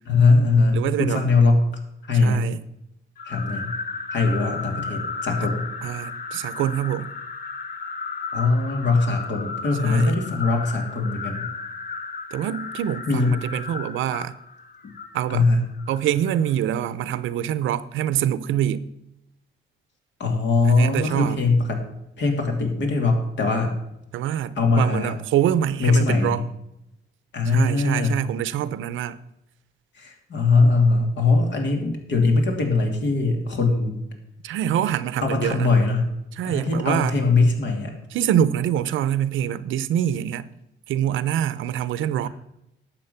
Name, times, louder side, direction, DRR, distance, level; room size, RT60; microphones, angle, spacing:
voice 1, 0.1-1.6 2.0-2.5 3.2-3.7 4.1-5.7 8.3-11.5 13.1-13.4 14.8-14.9 15.3-15.6 20.2-21.8 22.2-23.8 24.6-25.1 25.8-26.4 27.3-28.2 29.9-34.0 35.2-36.1 36.4-38.0, left 3 dB, 65° left, 2.8 m, -21 dB
voice 2, 0.7-1.2 2.1-2.6 5.8-7.1 9.8-10.2 12.3-14.3 15.1-15.5 15.9-18.9 20.6-21.4 24.1-26.4 27.5-29.2 34.4-35.7 36.3-37.1 38.1-40.5 40.9-42.3, right 10 dB, 80° right, 0.7 m, -25 dB
sound 1, 3.2-16.5, left 4 dB, 50° left, 1.5 m, -34 dB
12.0 x 7.6 x 5.7 m
cardioid pair, 90°, 20 cm